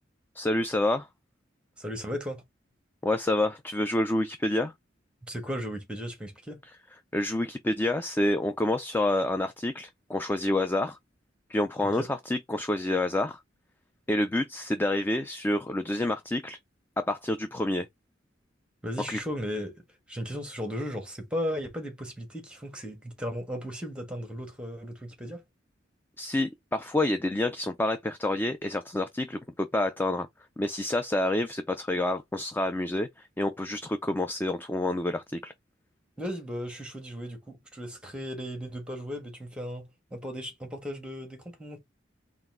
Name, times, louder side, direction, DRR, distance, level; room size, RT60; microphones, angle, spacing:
voice 1, 0.4-1.1 3.0-4.7 7.1-11.0 11.5-13.4 14.1-16.6 17.0-17.9 19.1-19.2 26.2-30.3 30.6-35.5, left 1 dB, 10° left, 0.3 m, -28 dB
voice 2, 1.8-2.4 5.2-6.6 12.0-12.1 18.8-19.8 20.1-25.4 36.2-41.8, equal, 5° right, 1.3 m, -36 dB
4.0 x 2.4 x 3.7 m
head